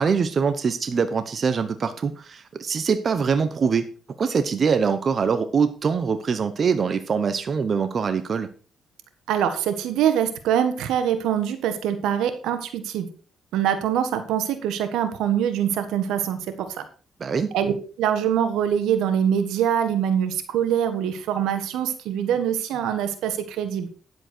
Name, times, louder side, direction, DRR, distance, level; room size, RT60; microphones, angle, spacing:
voice 1, 0.0-3.8 4.2-8.5 17.2-17.5, right 6 dB, 45° right, 10 dB, 0.9 m, -23 dB
voice 2, 9.3-13.1 13.5-16.8 17.5-23.9, right 9 dB, 90° right, 9 dB, 1.5 m, -24 dB
10.0 x 7.8 x 4.5 m, 0.38 s
cardioid pair, 90°, 0 cm